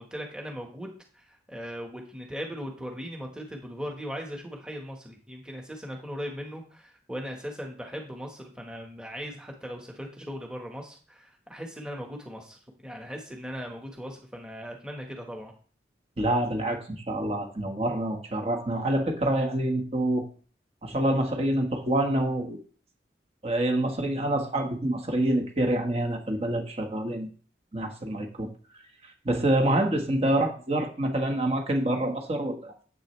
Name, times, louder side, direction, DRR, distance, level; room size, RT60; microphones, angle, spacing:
voice 1, 0.0-15.5, equal, 5° right, 1 dB, 1.5 m, -39 dB
voice 2, 16.2-20.2 20.8-22.6 23.4-27.3 27.7-28.5 29.2-32.7, right 1 dB, 35° right, 2 dB, 1.6 m, -26 dB
10.5 x 8.1 x 3.4 m, 0.42 s
head